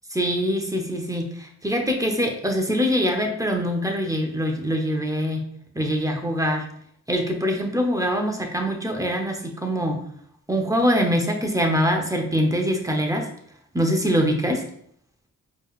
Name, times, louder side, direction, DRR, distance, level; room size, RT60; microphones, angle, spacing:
voice 1, 0.1-5.4 5.7-6.7 7.1-10.0 10.5-13.3 13.7-14.7, equal, 10° right, 2 dB, 0.8 m, -23 dB
4.5 x 3.2 x 2.4 m, 0.65 s
cardioid pair, 70°, 33 cm